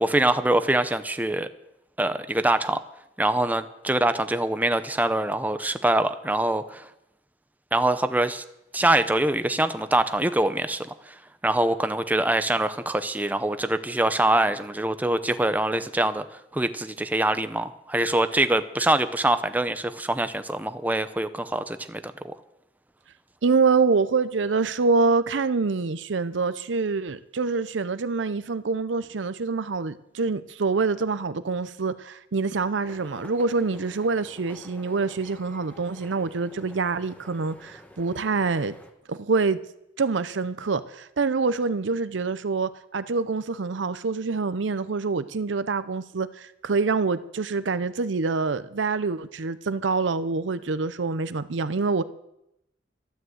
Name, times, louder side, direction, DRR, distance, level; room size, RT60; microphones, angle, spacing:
voice 1, 0.0-1.5 2.0-2.8 3.2-6.9 7.7-8.4 8.7-16.2 16.5-22.3, right 1 dB, 10° right, 0.6 m, -24 dB
voice 2, 23.4-38.7 39.1-39.6 40.0-52.0, right 4 dB, 85° right, 0.6 m, -26 dB
sound 1, 32.8-38.9, left 1 dB, 10° left, 1.2 m, -48 dB
12.5 x 10.5 x 7.8 m
head